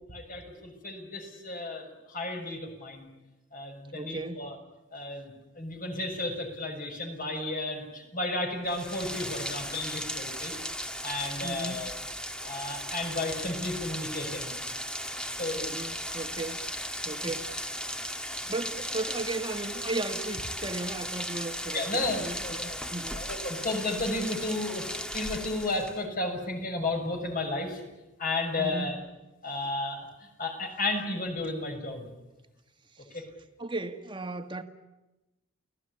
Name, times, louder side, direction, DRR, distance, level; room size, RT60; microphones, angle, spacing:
voice 1, 0.1-3.1 3.5-4.6 4.9-10.5 11.0-11.9 12.4-14.5 15.3-15.6 17.2-17.3 21.7-22.8 23.1-27.8 28.2-29.0 29.4-32.1 33.1-33.2, left 2 dB, 45° left, 6.4 m, -33 dB
voice 2, 3.9-4.5 11.4-11.9 15.5-16.7 17.0-17.7 18.5-23.2 28.6-29.0 32.9-33.0 33.6-34.6, right 2 dB, 25° right, 1.7 m, -36 dB
Rain, 8.7-26.1, equal, 5° left, 1.4 m, -36 dB
29.0 x 18.0 x 9.9 m
head